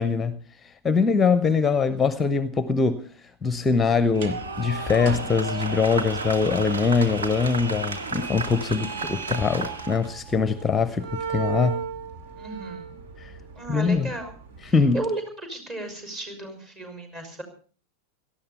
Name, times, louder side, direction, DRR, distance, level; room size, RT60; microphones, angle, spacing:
voice 1, 0.0-11.8 13.2-13.3 13.7-14.1 14.6-15.0, left 5 dB, 15° left, 15 dB, 0.8 m, -23 dB
sound 1, 4.1-15.0, right 6 dB, 55° right, 2.4 m, -38 dB
sound 2, 4.1-10.1, right 3 dB, 70° right, 2.2 m, -33 dB
voice 2, 8.7-9.0 12.4-12.9 13.6-14.3 14.6-15.2 15.5-17.4, right 2 dB, 25° right, 6 dB, 5.7 m, -34 dB
18.0 x 13.5 x 5.6 m, 0.40 s
figure-of-eight pair, 90°, 0 cm